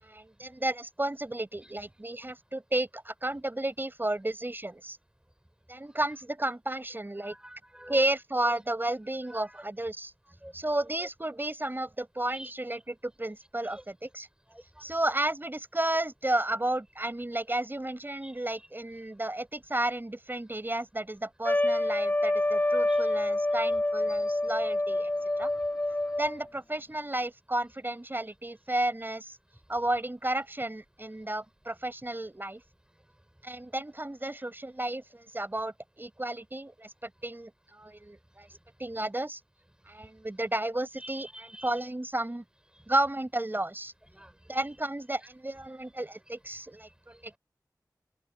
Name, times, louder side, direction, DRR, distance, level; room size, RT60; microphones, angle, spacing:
voice 1, 0.0-5.0 5.7-7.3 7.9-10.1 10.5-14.3 14.8-25.1 25.4-25.5 26.2-29.4 29.7-32.6 33.4-38.5 38.8-39.4 39.9-42.4 42.9-43.9 44.5-47.4, right 1 dB, 30° right, 5.5 m, -32 dB
voice 2, 7.2-8.1 9.2-9.6 10.4-10.5 12.3-12.5 13.6-13.8 14.5-14.6 18.2-18.7 22.9-23.1 23.5-23.8 24.1-24.2 41.0-41.7 44.1-44.6 45.2-45.3, right 1 dB, 10° right, 4.7 m, -48 dB
Trumpet, 21.4-26.5, left 1 dB, 25° left, 3.1 m, -27 dB
open air
wide cardioid pair, 55°, 7 cm